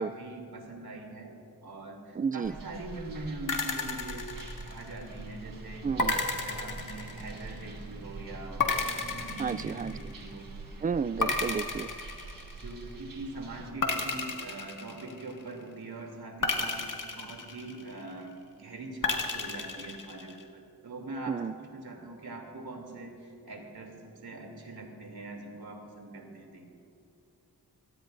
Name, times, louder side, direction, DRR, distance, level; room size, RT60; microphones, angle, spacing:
voice 1, 0.0-4.3 4.6-5.9 6.3-8.7 9.0-10.5 11.4-11.5 12.6-16.8 17.1-26.6, right 2 dB, 80° right, 1 dB, 3.1 m, -43 dB
voice 2, 2.2-2.6 5.8-6.1 9.4-9.9 10.8-11.9 21.3-21.5, right 6 dB, 25° right, 18 dB, 0.3 m, -31 dB
sound 1, 2.4-13.7, right 3 dB, 60° right, 1.5 m, -44 dB
sound 2, 3.5-5.1 6.0-7.6 8.6-10.3 11.2-12.8 13.8-15.5 16.4-18.1 19.0-20.4, left 3 dB, 55° left, 2.0 m, -32 dB
25.0 x 18.0 x 2.7 m, 2.6 s
wide cardioid pair, 80°, 37 cm